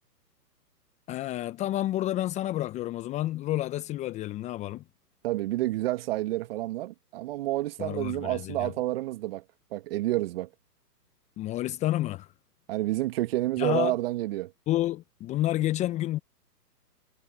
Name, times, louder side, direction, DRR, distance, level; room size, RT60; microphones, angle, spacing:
voice 1, 1.1-4.8 7.8-8.7 11.4-12.3 13.6-13.9 14.7-16.2, left 15 dB, 15° left, 1.2 m, -30 dB
voice 2, 5.2-9.4 9.7-10.5 12.7-14.5, right 16 dB, 35° right, 2.2 m, -29 dB
figure-of-eight pair, 135°, 50 cm